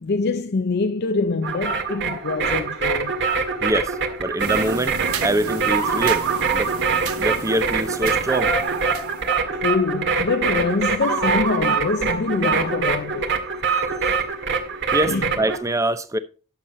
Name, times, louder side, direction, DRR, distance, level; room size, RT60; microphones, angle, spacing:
voice 1, 0.0-3.2 9.5-13.3 15.1-15.3, left 4 dB, 50° left, 0.5 m, -24 dB
sound 1, 1.4-15.6, right 5 dB, 55° right, 1.9 m, -24 dB
voice 2, 3.6-5.0 5.2-6.2 6.5-6.7 7.2-8.6 14.9-16.2, right 1 dB, 15° right, 0.7 m, -24 dB
sound 2, 4.4-9.4, right 5 dB, 85° right, 1.2 m, -34 dB
11.5 x 7.3 x 4.3 m
head